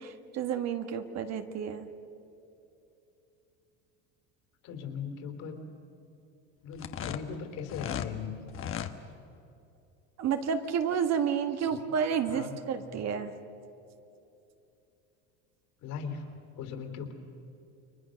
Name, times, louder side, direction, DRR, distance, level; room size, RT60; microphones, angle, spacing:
voice 1, 0.0-1.9 10.2-13.3, right 7 dB, 45° right, 7 dB, 1.7 m, -30 dB
voice 2, 4.6-5.6 6.6-8.4 11.7-11.9 12.3-12.6 15.8-17.1, left 6 dB, 60° left, 5 dB, 3.6 m, -39 dB
sound 1, 6.7-8.1 8.5-8.9, left 9 dB, 35° left, 1.3 m, -36 dB
29.5 x 22.0 x 6.5 m, 2.8 s
supercardioid pair, 115°, 35 cm